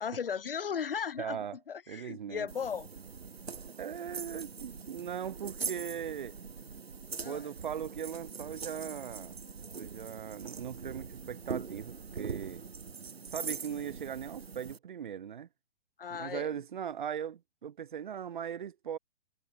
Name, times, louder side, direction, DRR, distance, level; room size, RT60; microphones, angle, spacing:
voice 1, 0.0-1.4 1.7-2.9 7.2-7.5 13.7-13.9 16.0-16.6, left 7 dB, 60° left, 0.9 m, -36 dB
voice 2, 1.2-1.6 1.9-2.5 3.8-6.3 7.2-9.4 9.7-12.6 13.3-15.5 16.1-19.0, right 8 dB, 50° right, 1.6 m, -39 dB
sound 1, 2.5-14.8, right 5 dB, 70° right, 1.2 m, -42 dB
figure-of-eight pair, 125°, 32 cm